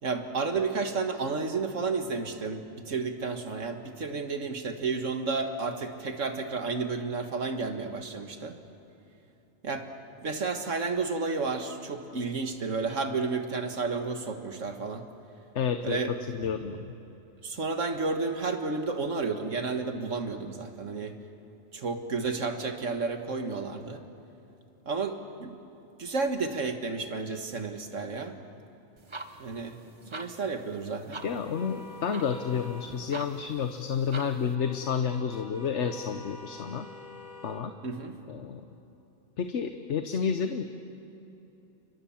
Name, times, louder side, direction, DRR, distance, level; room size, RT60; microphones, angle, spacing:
voice 1, 0.0-8.6 9.6-9.9 10.2-15.0 15.8-16.1 17.4-21.1 21.7-24.0 24.9-25.6 26.0-28.4 29.4-29.8 30.1-31.2 37.8-38.1, right 4 dB, 70° right, 6 dB, 2.0 m, -31 dB
voice 2, 15.5-16.9 31.2-36.9 37.4-37.7 38.3-38.7 39.4-40.6, left 7 dB, 65° left, 7 dB, 1.2 m, -30 dB
sound 1, 29.0-34.5, right 3 dB, 25° right, 1.0 m, -46 dB
sound 2, 31.2-32.9 34.6-37.6, left 2 dB, ahead, 4.8 m, -46 dB
29.5 x 24.5 x 7.2 m, 3.0 s
omnidirectional pair, 1.3 m